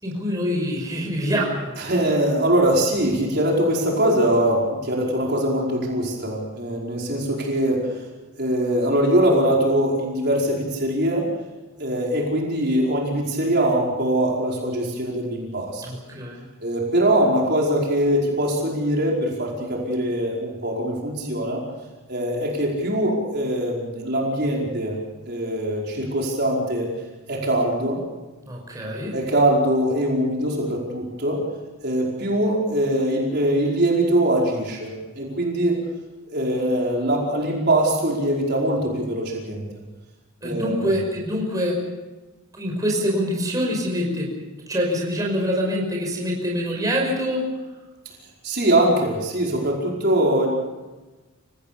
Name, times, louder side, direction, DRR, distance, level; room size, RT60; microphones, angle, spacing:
voice 1, 0.0-1.9 15.8-16.4 28.4-29.1 40.4-41.8 42.5-44.3 44.7-47.4, equal, 15° right, -1 dB, 5.6 m, -25 dB
voice 2, 1.8-7.8 8.4-11.3 11.8-15.8 16.6-21.6 22.1-24.9 25.3-26.9 27.3-28.0 29.1-31.4 31.8-35.8 36.3-39.7 40.4-40.9 48.4-50.6, right 1 dB, 50° right, -2 dB, 5.0 m, -22 dB
29.0 x 17.0 x 6.9 m, 1.2 s
head